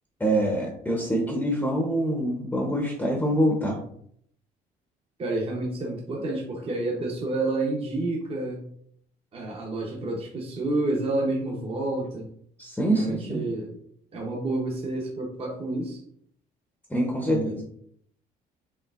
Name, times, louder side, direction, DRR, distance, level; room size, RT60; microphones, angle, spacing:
voice 1, 0.2-3.8 12.6-13.4 16.9-17.4, right 1 dB, 10° left, 0 dB, 0.7 m, -25 dB
voice 2, 5.2-8.6 9.3-12.3 12.9-13.8 14.1-16.0 17.2-17.6, right 2 dB, 35° right, -1 dB, 0.8 m, -29 dB
4.5 x 3.1 x 2.4 m, 0.66 s
cardioid pair, 110°, 17 cm